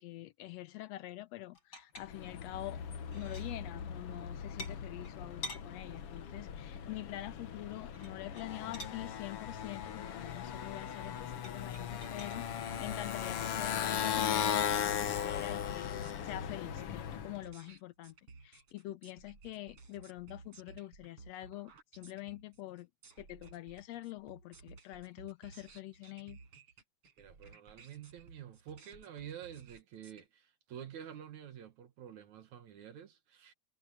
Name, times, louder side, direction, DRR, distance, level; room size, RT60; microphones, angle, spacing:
voice 1, 0.0-2.8 3.1-15.9 16.2-18.1 18.4-22.9 23.2-26.4, left 16 dB, 75° left, 1.6 m, -45 dB
sound 1, 1.5-2.5 2.9-3.6 4.6-5.7 7.9-9.0 11.4-12.4 13.4-13.7, left 1 dB, 30° left, 6.8 m, -47 dB
Motorcycle, 2.0-17.4, left 8 dB, 55° left, 1.9 m, -38 dB
sound 2, 14.3-30.2, right 4 dB, 45° right, 5.7 m, -57 dB
voice 2, 27.2-33.5, right 9 dB, 70° right, 2.8 m, -49 dB
omnidirectional pair, 3.5 m